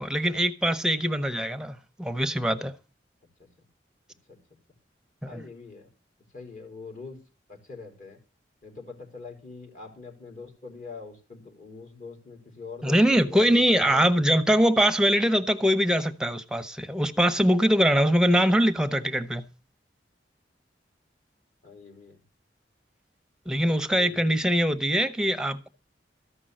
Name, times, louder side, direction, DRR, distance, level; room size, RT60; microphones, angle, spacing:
voice 1, 0.0-2.7 5.2-5.5 12.8-19.5 23.5-25.7, equal, 5° right, 0.8 m, -23 dB
voice 2, 5.3-5.9 6.3-7.2 7.5-8.2 8.6-14.1 21.6-22.2 23.9-24.3, left 4 dB, 50° left, 3.6 m, -43 dB
13.5 x 5.4 x 7.7 m
head